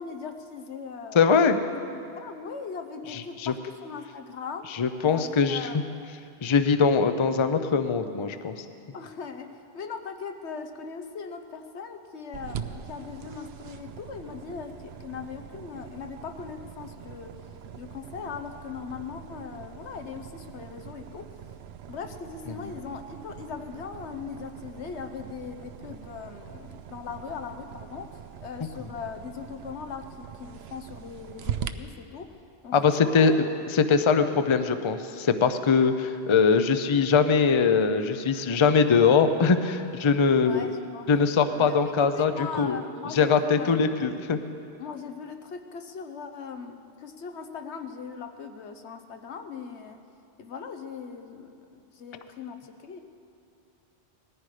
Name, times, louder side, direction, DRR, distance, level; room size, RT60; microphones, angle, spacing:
voice 1, 0.0-1.2 1.7-4.7 5.0-5.8 8.9-17.3 17.7-21.3 21.9-32.4 32.6-32.7 33.0-33.4 40.4-41.1 41.5-44.2 44.8-50.0 50.4-53.0, left 6 dB, 80° left, 6 dB, 1.2 m, -39 dB
voice 2, 1.1-1.6 3.1-3.5 4.8-5.8 6.4-8.6 32.7-40.7 41.1-42.8 43.1-44.4, left 5 dB, 35° left, 9 dB, 0.5 m, -22 dB
sound 1, 12.3-31.7, right 9 dB, 70° right, 0.8 m, -42 dB
19.5 x 14.5 x 4.9 m, 2.6 s
omnidirectional pair, 1.1 m